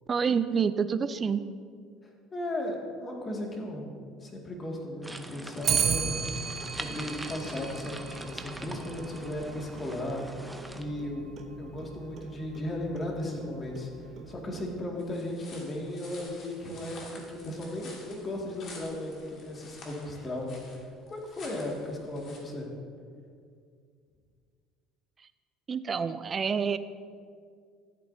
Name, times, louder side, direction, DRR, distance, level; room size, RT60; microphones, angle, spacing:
voice 1, 0.1-1.4 25.7-26.8, right 6 dB, 35° right, 12 dB, 0.4 m, -27 dB
voice 2, 2.3-3.9 4.2-13.9 14.3-22.7, left 1 dB, 30° left, -1 dB, 2.0 m, -36 dB
sound 1, 5.0-10.8, right 1 dB, 5° right, 0.7 m, -43 dB
Clock, 5.6-15.0, right 6 dB, 50° right, 0.9 m, -36 dB
sound 2, 15.0-22.4, left 3 dB, 55° left, 2.2 m, -49 dB
14.0 x 8.4 x 2.7 m, 2.2 s
supercardioid pair, 95°, 0 cm